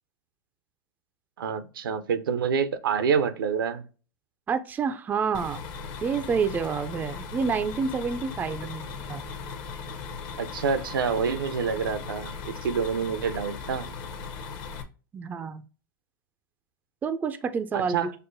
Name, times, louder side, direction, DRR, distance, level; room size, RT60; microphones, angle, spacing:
voice 1, 1.4-3.8 10.4-13.9 17.7-18.1, right 6 dB, 80° right, 0.6 m, -27 dB
voice 2, 4.5-5.6 6.0-8.8 9.1-9.2 15.1-15.6 17.0-18.0, right 5 dB, 15° right, 0.4 m, -28 dB
sound 1, 5.3-14.8, left 5 dB, 40° left, 0.7 m, -38 dB
6.4 x 2.1 x 2.5 m
hypercardioid pair, 115°, 11 cm